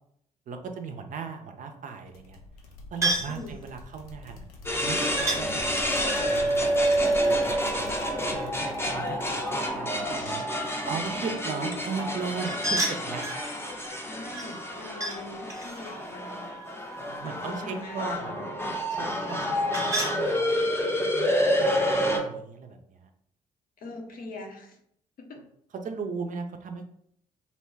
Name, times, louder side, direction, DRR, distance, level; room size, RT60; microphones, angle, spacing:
voice 1, 0.5-2.4 2.9-4.4 4.8-5.9 6.2-7.0 7.3-7.8 8.3-10.5 10.9-13.2 17.0-18.5 18.9-20.7 21.1-23.1 25.8-26.8, right 5 dB, 45° right, 5 dB, 0.5 m, -37 dB
sound 1, 2.1-11.3, left 3 dB, 85° left, 0.4 m, -46 dB
sound 2, 3.0-3.4 5.2-5.4 6.1-7.9 12.4-13.4 14.3-15.2 15.5-17.4 19.3-20.2, right 2 dB, 15° right, 0.8 m, -32 dB
sound 3, 4.6-22.2, equal, 15° left, 0.7 m, -28 dB
voice 2, 10.1-10.5 11.2-11.8 14.0-16.5 17.2-18.3 23.8-24.8 25.2-25.4, left 2 dB, 50° left, 2 dB, 0.7 m, -42 dB
2.6 x 2.2 x 3.2 m, 0.70 s
hypercardioid pair, 45°, 18 cm